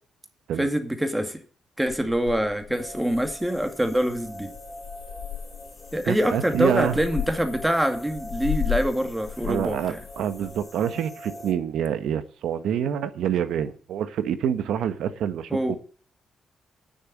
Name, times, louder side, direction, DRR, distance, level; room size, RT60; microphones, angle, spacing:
voice 1, 0.6-1.4 1.8-4.5 5.9-10.0 15.5-15.8, equal, 10° right, 2.1 m, -25 dB
Purr / Meow, 1.9-10.7, left 9 dB, 75° left, 3.0 m, -36 dB
sound 1, 2.7-11.5, left 1 dB, 20° left, 3.5 m, -43 dB
voice 2, 6.1-7.0 9.4-15.8, right 9 dB, 80° right, 1.1 m, -27 dB
9.5 x 6.8 x 8.5 m
cardioid pair, 90°, 0 cm